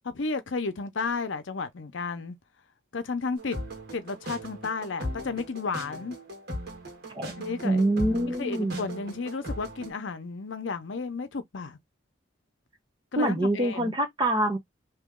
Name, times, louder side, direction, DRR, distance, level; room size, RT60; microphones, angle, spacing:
voice 1, 0.0-2.4 2.9-3.6 3.9-6.2 7.4-7.8 8.4-11.8 13.1-13.9, left 4 dB, 75° left, 0.7 m, -32 dB
sound 1, 3.4-9.9, equal, 55° right, 1.8 m, -38 dB
voice 2, 7.6-8.8 13.2-14.6, right 1 dB, 25° right, 1.0 m, -25 dB
3.0 x 3.0 x 3.6 m
head